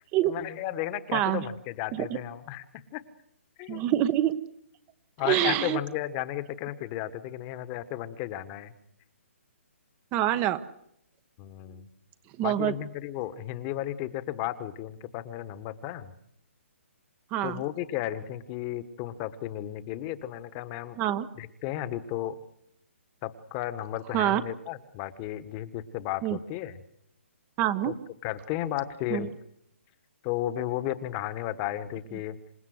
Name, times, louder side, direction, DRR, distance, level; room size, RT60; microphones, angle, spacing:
voice 1, 0.2-3.0 3.6-3.8 5.2-8.7 11.4-11.9 12.4-16.1 17.4-21.0 21.4-22.3 23.2-26.8 27.8-27.9 28.2-29.3 30.2-32.4, left 13 dB, 30° left, 14 dB, 1.4 m, -34 dB
voice 2, 1.1-1.4 1.9-2.1 3.7-4.4 5.2-5.8 10.1-10.6 12.4-12.7 17.3-17.6 21.0-21.3 24.1-24.4 26.2-26.4 27.6-27.9 29.1-29.3, right 13 dB, 25° right, 13 dB, 1.0 m, -25 dB
27.5 x 17.5 x 8.0 m, 0.75 s
hypercardioid pair, 145°, 7 cm